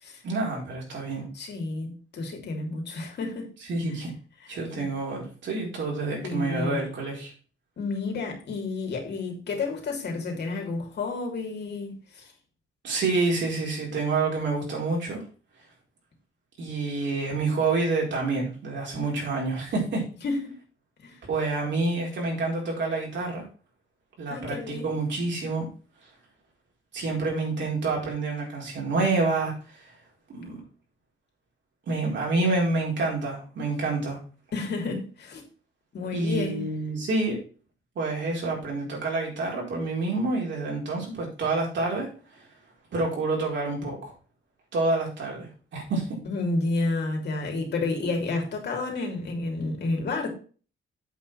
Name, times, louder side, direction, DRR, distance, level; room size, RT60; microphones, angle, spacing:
voice 1, 0.2-1.3 3.7-4.1 4.5-7.3 12.8-15.2 16.6-20.0 21.3-23.4 24.2-25.7 26.9-29.5 29.8-29.9 30.3-30.6 31.9-34.2 36.1-37.4 37.9-42.5 42.9-44.1 44.7-46.0, right 3 dB, 65° right, 4.6 m, -28 dB
voice 2, 1.3-3.5 4.4-4.9 6.2-6.8 7.8-12.3 20.2-20.5 21.0-21.2 24.3-25.0 34.5-35.4 35.9-36.6 46.2-50.3, left 3 dB, 55° left, 3.2 m, -30 dB
8.3 x 5.7 x 5.8 m
wide cardioid pair, 155°, 20 cm